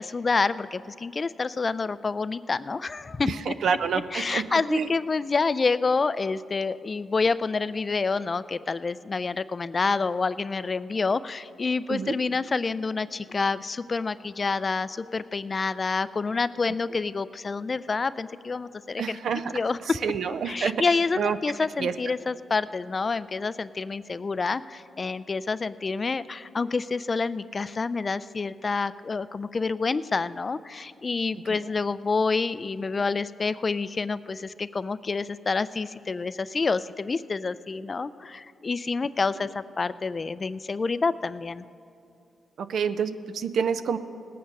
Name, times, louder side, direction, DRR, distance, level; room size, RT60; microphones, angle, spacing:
voice 1, 0.0-3.5 4.1-19.2 19.5-20.0 20.3-41.6, left 4 dB, 35° left, 15 dB, 0.3 m, -28 dB
voice 2, 3.3-4.9 11.9-12.1 19.0-19.5 20.0-20.8 21.2-21.4 21.8-21.9 31.5-31.6 42.6-44.0, right 6 dB, 70° right, 12 dB, 0.5 m, -28 dB
18.5 x 8.7 x 5.3 m, 2.7 s
cardioid pair, 100°, 0 cm